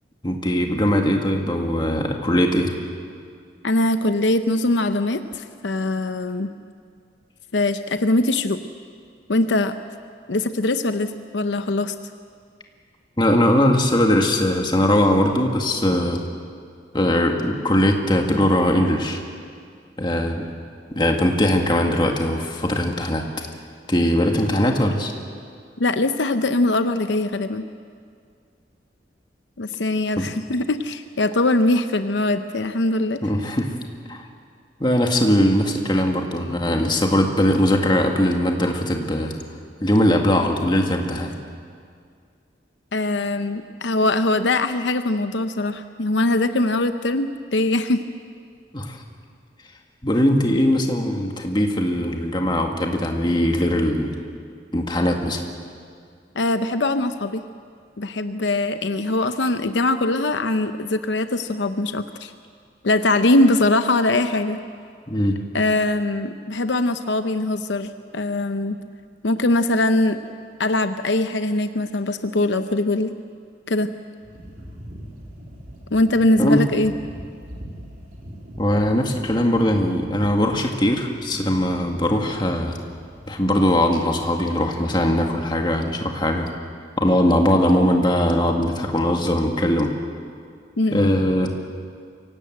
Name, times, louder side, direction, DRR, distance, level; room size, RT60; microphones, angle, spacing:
voice 1, 0.2-2.7 13.2-16.2 16.9-19.2 20.0-20.5 20.9-23.3 23.9-25.1 30.2-30.3 33.2-33.7 34.1-34.3 34.8-39.3 39.8-41.4 48.7-49.0 50.0-54.2 54.7-55.4 65.1-65.4 76.4-76.6 78.6-82.8 83.3-86.5 87.0-89.9 90.9-91.5, left 1 dB, 25° left, 2 dB, 2.0 m, -20 dB
voice 2, 3.6-6.5 7.5-8.6 9.3-9.7 10.3-11.9 25.8-27.7 29.6-33.2 42.9-48.0 56.4-57.4 58.0-62.3 62.8-64.6 65.5-68.8 69.2-70.2 70.6-73.1 73.7-73.9 75.9-76.9 90.8-91.1, left 2 dB, 80° left, 9 dB, 0.8 m, -22 dB
sound 1, 74.2-84.4, equal, 50° right, 4.0 m, -42 dB
25.0 x 17.5 x 8.0 m, 2.2 s
head